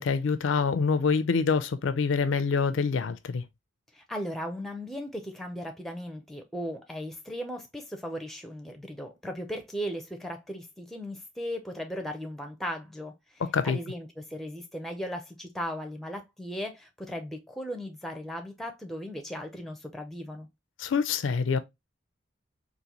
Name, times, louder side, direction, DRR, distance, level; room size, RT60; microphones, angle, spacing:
voice 1, 0.0-3.4 13.4-13.8 20.8-21.6, left 5 dB, 75° left, 0.4 m, -26 dB
voice 2, 3.9-20.5, equal, ahead, 0.5 m, -37 dB
3.9 x 2.5 x 2.8 m
head